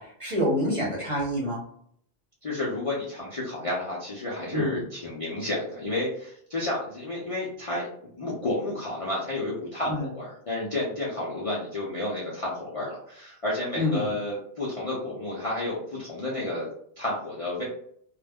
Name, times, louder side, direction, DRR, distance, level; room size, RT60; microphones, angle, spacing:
voice 1, 0.0-1.6 4.5-4.8 9.9-10.0 13.8-14.1, left 1 dB, 35° right, -4 dB, 0.7 m, -27 dB
voice 2, 2.4-7.9 8.1-16.7 17.0-17.6, left 2 dB, 40° left, -6 dB, 0.5 m, -31 dB
2.3 x 2.0 x 3.4 m, 0.66 s
omnidirectional pair, 1.2 m